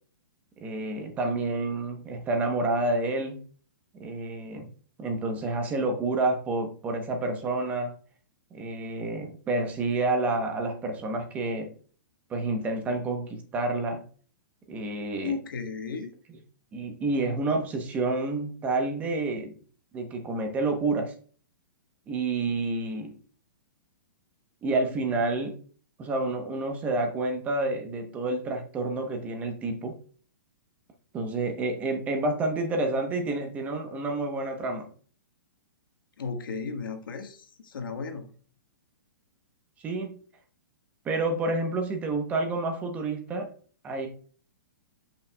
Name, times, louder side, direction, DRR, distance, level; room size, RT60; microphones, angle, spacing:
voice 1, 0.6-3.4 4.0-4.7 5.0-7.9 8.5-11.7 12.3-14.0 14.7-15.4 16.7-19.5 19.9-21.1 22.1-23.2 24.6-25.6 26.0-30.0 31.1-34.9 39.8-40.2 41.0-43.5 43.8-44.1, right 2 dB, 15° right, 5 dB, 0.9 m, -29 dB
voice 2, 15.2-16.1 36.2-38.3, left 5 dB, 85° left, 6 dB, 1.5 m, -35 dB
11.5 x 5.9 x 2.3 m, 0.43 s
hypercardioid pair, 165°, 11 cm